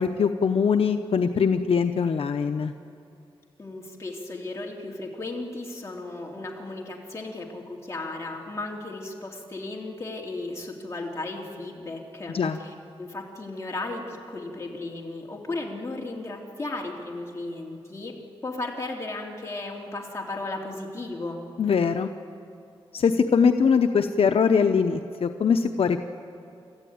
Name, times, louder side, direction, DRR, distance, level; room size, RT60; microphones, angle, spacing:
voice 1, 0.0-2.7 12.3-12.6 21.6-22.1 22.9-26.1, left 6 dB, 80° left, 6 dB, 0.8 m, -22 dB
voice 2, 3.6-18.1 18.4-21.4, left 2 dB, 30° left, -1 dB, 3.2 m, -35 dB
29.5 x 14.0 x 9.5 m, 2.5 s
wide cardioid pair, 135°, 10 cm